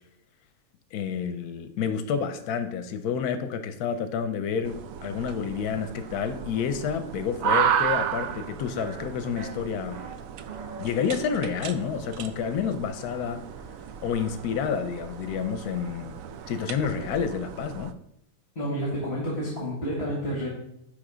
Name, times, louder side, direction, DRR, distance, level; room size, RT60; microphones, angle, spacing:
voice 1, 0.9-10.0 10.8-13.4 14.0-16.1 16.5-18.0, left 7 dB, 85° left, 9 dB, 1.2 m, -29 dB
sound 1, 4.6-17.9, right 8 dB, 70° right, 0.9 m, -33 dB
sound 2, 7.6-7.7 8.2-8.5 8.8-9.1 9.4-10.1 10.5-10.9, right 5 dB, 40° right, 0.6 m, -42 dB
voice 2, 18.6-20.5, equal, 45° left, -3 dB, 2.1 m, -29 dB
10.5 x 3.5 x 5.0 m, 0.80 s
omnidirectional pair, 1.6 m